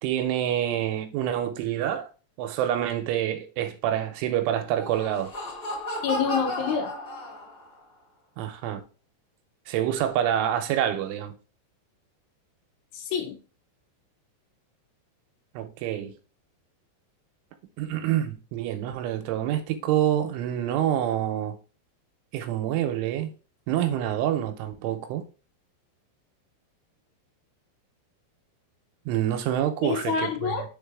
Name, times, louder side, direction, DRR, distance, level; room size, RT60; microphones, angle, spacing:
voice 1, 0.0-2.1 2.4-5.3 8.4-8.8 9.7-11.3 15.6-16.1 17.8-21.6 22.3-23.3 23.7-25.2 29.1-30.6, right 11 dB, 85° right, 3.2 m, -27 dB
Laughter, 4.6-7.8, left 1 dB, 30° left, 2.2 m, -34 dB
voice 2, 6.0-6.9 12.9-13.4 29.8-30.6, left 6 dB, 85° left, 3.5 m, -27 dB
7.1 x 4.0 x 3.5 m
omnidirectional pair, 5.5 m